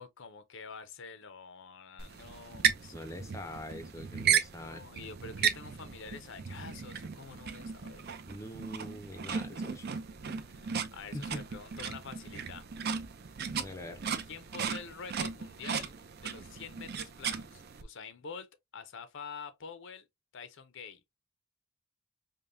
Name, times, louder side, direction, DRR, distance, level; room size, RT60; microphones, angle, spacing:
voice 1, 0.0-2.9 4.6-8.1 10.5-10.6 10.9-12.7 14.3-15.9 16.2-20.1 20.3-21.0, left 5 dB, 60° left, 0.6 m, -47 dB
sound 1, 2.0-17.8, right 7 dB, 50° right, 0.6 m, -35 dB
voice 2, 2.9-4.8 8.3-9.9 11.1-11.4 13.6-14.0, left 1 dB, 15° left, 0.6 m, -43 dB
5.2 x 2.2 x 2.6 m
head